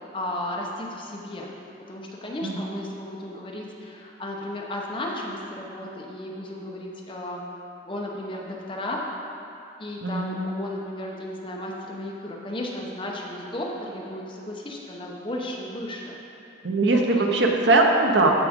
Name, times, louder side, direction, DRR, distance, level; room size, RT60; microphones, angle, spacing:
voice 1, 0.0-1.5 1.9-7.4 7.8-9.1 9.8-16.2 16.9-17.3, left 1 dB, 25° left, -2 dB, 0.9 m, -34 dB
voice 2, 10.0-10.5 16.6-18.3, right 2 dB, 70° right, 1 dB, 0.8 m, -21 dB
14.0 x 4.9 x 3.6 m, 2.8 s
head